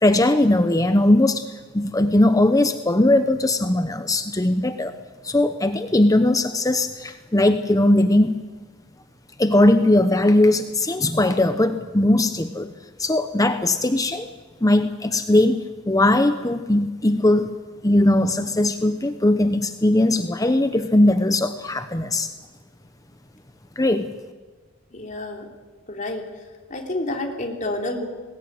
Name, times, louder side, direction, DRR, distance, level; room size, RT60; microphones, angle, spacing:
voice 1, 0.0-4.9 5.2-8.4 9.4-12.7 13.0-14.3 14.6-15.6 15.9-17.5 17.8-22.3 23.8-24.1, left 1 dB, 15° left, 9 dB, 0.9 m, -19 dB
voice 2, 24.9-25.5 25.9-26.3 26.7-28.1, left 2 dB, 40° left, 2 dB, 3.5 m, -29 dB
22.5 x 20.0 x 9.7 m, 1.3 s
head